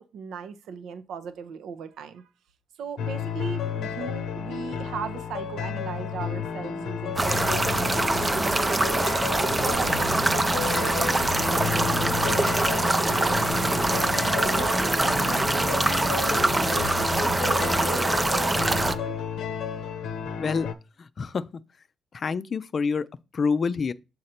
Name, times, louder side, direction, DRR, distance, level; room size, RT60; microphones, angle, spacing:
voice 1, 0.0-2.3 2.8-8.9 9.3-12.4 12.6-14.1 14.5-19.2, right 6 dB, 80° right, 0.6 m, -38 dB
sound 1, 3.0-20.7, left 7 dB, 80° left, 0.6 m, -32 dB
sound 2, 7.2-18.9, right 2 dB, 20° right, 0.5 m, -24 dB
sound 3, 9.5-15.2, right 3 dB, 40° right, 1.2 m, -42 dB
voice 2, 20.4-20.7 21.0-21.4 22.1-23.1 23.3-23.9, left 5 dB, 45° left, 0.4 m, -27 dB
6.5 x 3.9 x 4.3 m
cardioid pair, 90°, 0 cm